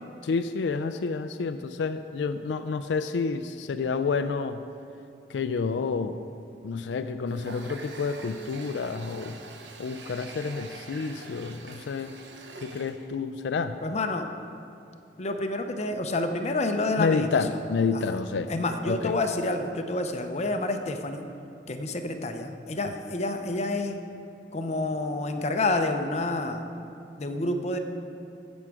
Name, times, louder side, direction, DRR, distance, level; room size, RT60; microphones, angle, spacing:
voice 1, 0.2-4.6 5.3-6.2 6.6-9.4 9.8-12.1 12.6-13.8 17.0-18.5 18.8-19.1, left 4 dB, 80° left, 9 dB, 0.4 m, -29 dB
Water tap faucet, 7.3-13.1, right 3 dB, 80° right, 0.9 m, -44 dB
voice 2, 13.8-14.3 15.2-17.6 17.9-18.2 18.5-21.3 21.7-24.0 24.5-26.6 27.2-27.8, left 2 dB, 40° left, 6 dB, 0.7 m, -28 dB
15.0 x 6.3 x 4.7 m, 2.5 s
head